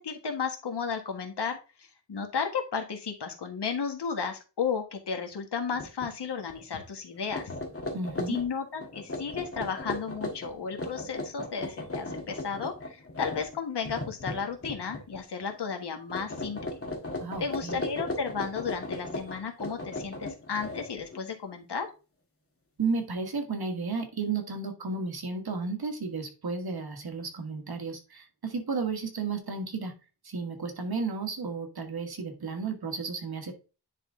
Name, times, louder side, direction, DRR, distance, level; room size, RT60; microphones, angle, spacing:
voice 1, 0.0-7.5 8.3-16.6 17.4-21.9, left 6 dB, 75° left, 4 dB, 1.6 m, -33 dB
sound 1, 5.7-6.1 6.4-6.6 7.1-15.2 15.5-15.8 16.1-21.2, left 2 dB, 35° left, 1.7 m, -37 dB
voice 2, 7.9-8.4 17.2-17.8 22.8-29.9 30.2-33.5, right 4 dB, 65° right, 4 dB, 1.7 m, -33 dB
10.0 x 3.8 x 3.7 m, 0.32 s
wide cardioid pair, 105°, 41 cm